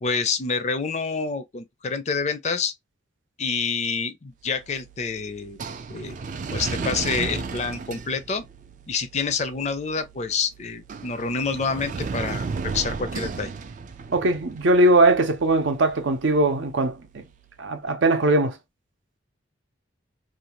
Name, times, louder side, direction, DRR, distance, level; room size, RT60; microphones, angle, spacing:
voice 1, 0.0-2.7 3.4-5.6 5.9-6.2 6.5-8.4 8.9-13.5, left 5 dB, 35° left, 0.4 m, -27 dB
sound 1, 4.5-17.6, right 4 dB, 40° right, 0.3 m, -35 dB
voice 2, 14.1-17.2 17.6-18.6, right 2 dB, 80° right, 0.6 m, -20 dB
2.6 x 2.3 x 2.9 m
head